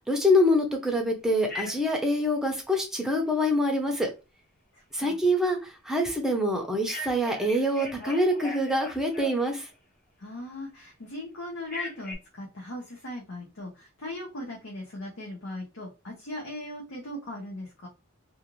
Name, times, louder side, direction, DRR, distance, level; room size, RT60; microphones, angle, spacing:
voice 1, 0.1-4.1 4.9-5.6 5.9-9.6, left 1 dB, 5° right, 0.6 m, -25 dB
Telephone, 1.5-2.0 6.9-9.7 11.7-12.2, left 2 dB, 45° left, 1.1 m, -39 dB
voice 2, 4.7-5.2 10.2-17.9, left 1 dB, 70° left, 0.8 m, -39 dB
2.5 x 2.4 x 3.0 m
head